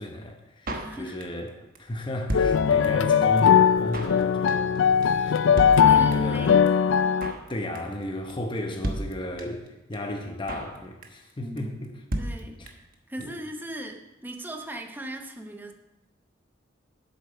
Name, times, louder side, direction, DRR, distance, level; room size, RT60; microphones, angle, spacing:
voice 1, 0.0-1.5 1.8-4.7 5.0-6.5 7.5-11.9 12.6-12.7 13.2-13.4, left 1 dB, 25° left, 3 dB, 0.9 m, -34 dB
voice 2, 0.7-1.2 4.1-4.2 5.8-6.7 11.4-11.9 12.2-15.7, right 1 dB, 10° right, 3 dB, 0.9 m, -38 dB
Drum kit, 0.7-1.5 1.8-1.9 2.0-3.1 3.4-3.5 3.7-4.2 4.5-4.8 5.0-5.1 5.3-5.4 5.6-6.4 6.7-6.8 6.9-7.5 7.8-8.0 8.3-8.4 8.6-8.7 8.8-9.7 9.9-10.0 10.2-10.8 11.0-11.3 11.6-11.7 11.8-11.9 12.1-12.9 13.2-13.3 13.5-13.6, right 1 dB, 50° right, 1.1 m, -33 dB
sound 1, 2.3-7.3, left 7 dB, 80° left, 0.4 m, -20 dB
8.3 x 7.5 x 5.6 m, 1.0 s
head